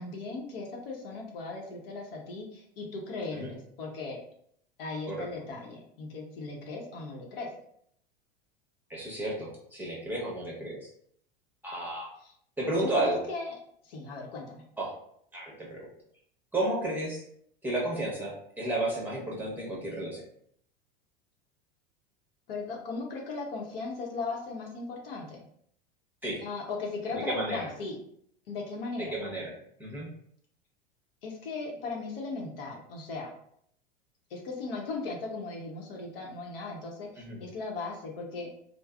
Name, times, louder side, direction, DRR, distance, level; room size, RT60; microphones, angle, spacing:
voice 1, 0.0-4.2 4.8-7.5 12.2-12.3 12.8-13.6 13.8-14.6 22.5-25.4 26.4-28.0 28.5-29.2 31.2-33.3 34.3-38.5, left 3 dB, 70° left, 0 dB, 0.8 m, -37 dB
voice 2, 8.9-10.8 11.6-12.1 12.6-13.2 14.8-14.9 15.3-15.8 16.5-17.2 17.6-20.2 26.2-26.4 27.1-27.6 29.0-29.5 29.8-30.1 37.2-37.4, right 1 dB, 5° right, -5 dB, 1.0 m, -32 dB
3.2 x 2.0 x 2.3 m, 0.67 s
hypercardioid pair, 95°, 29 cm